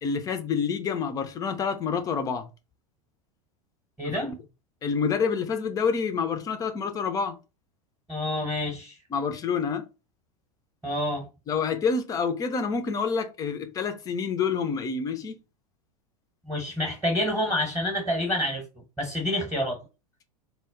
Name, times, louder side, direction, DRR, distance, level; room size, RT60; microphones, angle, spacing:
voice 1, 0.0-2.5 4.0-4.4 4.8-7.4 9.1-9.9 11.5-15.4, left 5 dB, 20° left, 0.3 m, -28 dB
voice 2, 4.0-4.3 8.1-9.0 10.8-11.3 16.5-18.6 19.0-19.8, left 1 dB, 10° right, 0.8 m, -28 dB
2.0 x 2.0 x 3.5 m
figure-of-eight pair, 85°, 19 cm